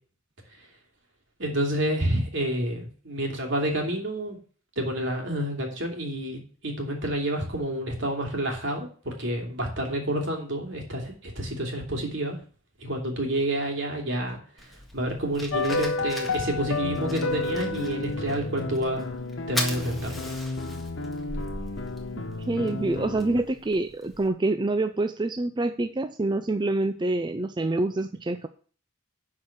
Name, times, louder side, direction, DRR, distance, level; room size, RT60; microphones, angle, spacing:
voice 1, 1.4-4.4 4.8-12.4 12.8-14.4 14.9-19.2 19.5-20.1, right 1 dB, 65° right, 2 dB, 2.8 m, -29 dB
Fire, 14.6-24.3, left 1 dB, ahead, 1.7 m, -39 dB
sound 1, 15.5-19.8 20.1-20.2, left 3 dB, 85° left, 0.8 m, -31 dB
sound 2, 16.8-23.4, left 2 dB, 65° left, 1.3 m, -34 dB
voice 2, 22.4-28.5, right 2 dB, 25° right, 9 dB, 0.5 m, -26 dB
11.0 x 4.8 x 7.1 m, 0.43 s
head